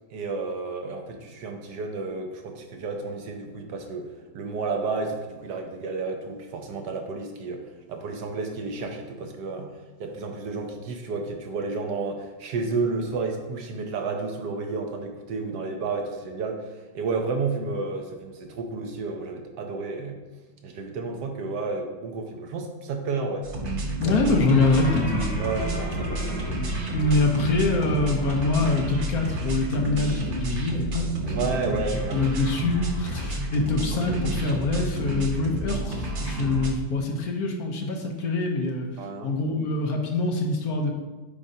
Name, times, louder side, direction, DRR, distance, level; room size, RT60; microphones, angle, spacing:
voice 1, 0.1-9.7 10.0-20.2 20.6-23.5 24.0-24.2 25.4-26.2 31.3-32.3 39.0-39.4, right 4 dB, 75° right, 3 dB, 1.3 m, -31 dB
sound 1, 23.4-36.7, right 1 dB, 50° right, 0.6 m, -30 dB
voice 2, 24.0-25.3 26.9-31.1 31.4-31.8 32.1-38.9 39.2-40.9, left 3 dB, 65° left, 2 dB, 1.2 m, -25 dB
sound 2, 24.5-30.2, right 1 dB, 5° left, 1.8 m, -35 dB
8.5 x 5.0 x 2.7 m, 1.2 s
omnidirectional pair, 1.9 m